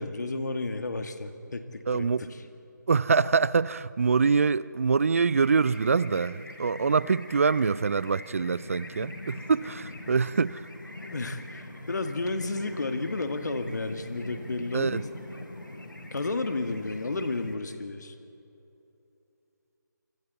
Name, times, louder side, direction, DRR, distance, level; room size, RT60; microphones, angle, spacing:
voice 1, 0.0-2.3 11.1-15.1 16.1-18.1, left 3 dB, 65° left, 7 dB, 1.8 m, -32 dB
voice 2, 1.9-2.3 2.9-10.7 14.7-15.0, right 5 dB, 45° right, 20 dB, 0.4 m, -25 dB
sound 1, 5.3-17.6, left 1 dB, 90° left, 3.4 m, -43 dB
27.0 x 25.5 x 4.1 m, 2.8 s
figure-of-eight pair, 160°, 10 cm